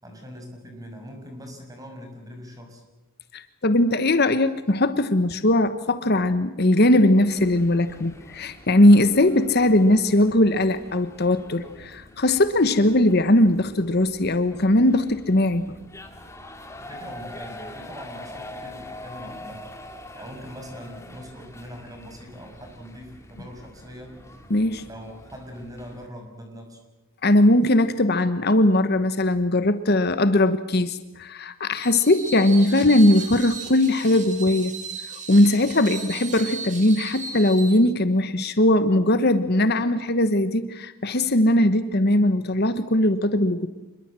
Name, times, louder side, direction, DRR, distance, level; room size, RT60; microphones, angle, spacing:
voice 1, 0.0-2.8 16.8-19.7 20.1-24.2 24.8-26.8, equal, 15° right, 3 dB, 6.2 m, -41 dB
voice 2, 3.3-15.7 24.5-24.8 27.2-34.7 35.3-43.7, left 1 dB, 50° left, 11 dB, 1.2 m, -20 dB
sound 1, 7.2-26.1, left 1 dB, 15° left, 2.4 m, -44 dB
Screech, 31.7-37.8, right 5 dB, 35° right, 2.8 m, -36 dB
27.0 x 22.5 x 7.6 m, 1.0 s
head